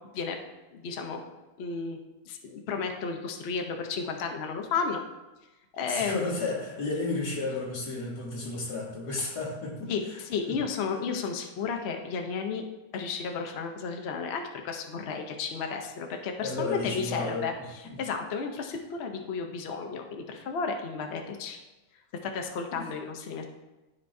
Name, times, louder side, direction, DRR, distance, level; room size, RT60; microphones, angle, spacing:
voice 1, 0.7-1.2 1.6-2.0 2.3-5.0 5.8-6.2 9.9-12.6 12.9-17.5 18.0-21.6 22.2-23.4, left 5 dB, 85° left, 3 dB, 0.5 m, -33 dB
voice 2, 5.9-10.2 10.5-10.6 16.4-17.5 17.8-18.0 22.7-22.8, left 3 dB, 55° left, -5 dB, 2.2 m, -32 dB
13.0 x 4.4 x 2.6 m, 1.1 s
omnidirectional pair, 2.1 m